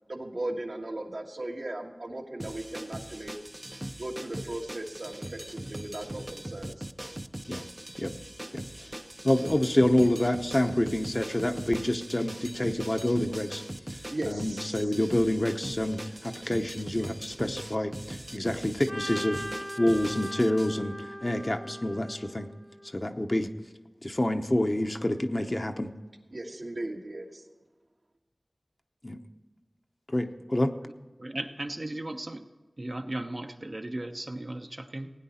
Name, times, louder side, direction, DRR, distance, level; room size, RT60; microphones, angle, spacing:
voice 1, 0.1-3.4 4.0-6.9 14.1-14.8 26.3-27.4, right 1 dB, 75° right, 1 dB, 1.5 m, -37 dB
sound 1, 2.4-20.7, right 1 dB, 25° right, 0.6 m, -40 dB
voice 2, 8.5-8.9 9.2-13.6 14.3-22.5 22.9-23.5 24.0-25.9 29.0-29.2 30.1-30.7, left 1 dB, 35° left, 6 dB, 0.8 m, -27 dB
Trumpet, 18.9-23.0, equal, 10° left, 0.9 m, -40 dB
voice 3, 30.9-32.5 32.8-35.1, right 1 dB, 55° right, 5 dB, 0.8 m, -36 dB
16.5 x 9.6 x 4.3 m, 1.3 s
wide cardioid pair, 50°, 0 cm